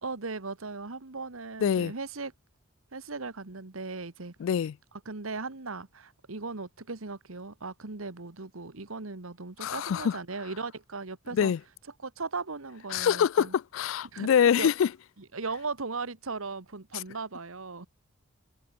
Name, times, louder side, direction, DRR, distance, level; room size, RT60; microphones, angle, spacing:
voice 1, 0.0-2.3 2.9-4.3 5.0-11.5 12.0-13.5 14.1-14.7 15.3-17.9, right 3 dB, 80° right, 1.5 m, -37 dB
voice 2, 1.6-1.9 4.4-4.8 9.6-10.2 11.3-11.6 12.9-14.9 16.9-17.0, left 8 dB, 70° left, 0.3 m, -25 dB
head